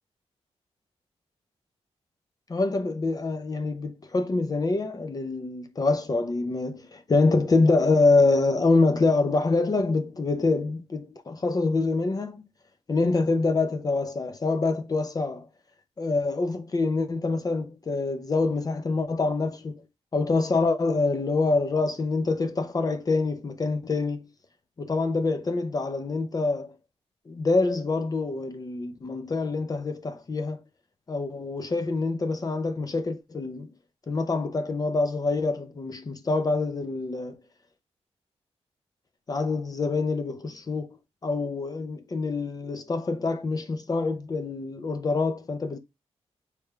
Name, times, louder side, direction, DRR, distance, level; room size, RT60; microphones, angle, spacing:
voice 1, 2.5-12.4 12.9-15.5 16.0-19.9 20.1-24.3 24.8-26.8 27.3-30.6 31.1-33.7 34.1-37.4 39.3-40.9 41.2-45.8, left 3 dB, 35° left, 0.6 m, -25 dB
4.7 x 3.3 x 2.3 m
wide cardioid pair, 110°, 11 cm